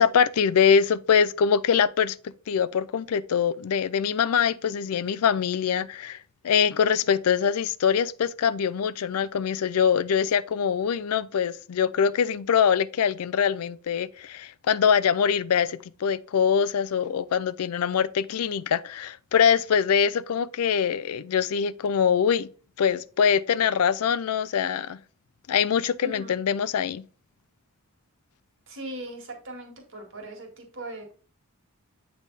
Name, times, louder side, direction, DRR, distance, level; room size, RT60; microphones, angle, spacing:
voice 1, 0.0-2.2 2.5-6.2 6.4-22.5 22.8-25.0 25.5-27.0, left 7 dB, 85° left, 0.4 m, -23 dB
voice 2, 26.0-26.3 28.7-31.1, right 1 dB, 60° right, 1.9 m, -39 dB
8.2 x 3.5 x 4.0 m
head